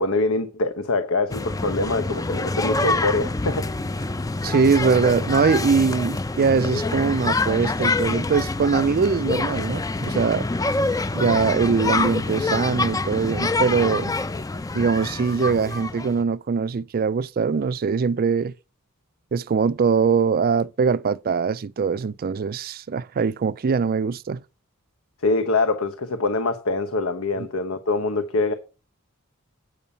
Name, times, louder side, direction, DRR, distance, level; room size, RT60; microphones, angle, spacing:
voice 1, 0.0-3.7 25.2-28.5, left 2 dB, 70° left, 0.9 m, -24 dB
sound 1, 1.3-16.2, left 3 dB, 15° left, 0.4 m, -26 dB
voice 2, 4.4-10.5 11.1-14.1 14.7-18.5 19.3-24.4, right 5 dB, 45° right, 0.4 m, -22 dB
8.4 x 5.5 x 7.1 m
head